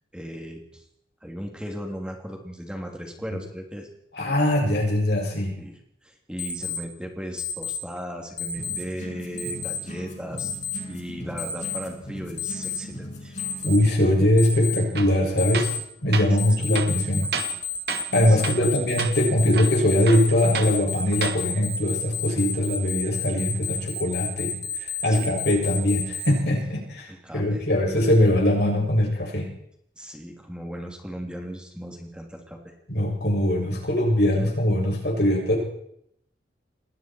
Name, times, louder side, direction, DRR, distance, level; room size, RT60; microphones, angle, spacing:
voice 1, 0.1-0.8 1.2-3.9 5.6-10.5 10.9-13.4 16.2-16.8 17.1-17.2 18.3-18.8 25.0-25.4 27.1-27.7 30.0-32.7, equal, 5° right, 1 dB, 3.1 m, -37 dB
voice 2, 4.2-5.6 13.6-15.7 16.0-17.3 18.1-24.5 24.8-29.5 32.9-35.6, left 1 dB, 60° left, 0 dB, 7.1 m, -22 dB
Alarm, 6.4-6.8 7.4-7.8 8.4-8.8 9.4-9.8 10.4-10.8 11.4-11.8 12.4-12.8 13.4-13.8 14.4-14.8 15.4-15.8 16.4-26.3, left 8 dB, 85° left, 5.8 m, -30 dB
sound 1, 8.6-13.8, equal, 40° left, 6.9 m, -39 dB
Tools, 15.0-15.2 15.5-15.8 16.1-16.3 16.7-17.6 17.9-18.2 18.4-18.7 19.0-19.1 19.5-20.8 21.1-21.4, right 5 dB, 55° right, 2.1 m, -31 dB
28.5 x 21.0 x 4.6 m, 0.72 s
head